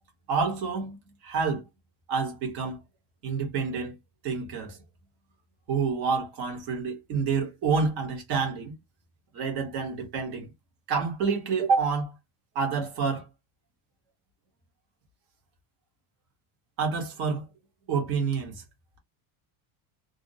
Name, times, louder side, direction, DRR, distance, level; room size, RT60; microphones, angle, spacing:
voice 1, 0.3-1.0 1.2-1.6 2.1-2.8 3.2-4.0 4.2-4.8 5.7-8.7 9.3-10.5 10.9-12.1 12.5-13.3 16.8-17.5 17.9-18.6, right 5 dB, 50° right, 1.2 m, -28 dB
2.7 x 2.1 x 2.6 m
cardioid pair, 175°, 47 cm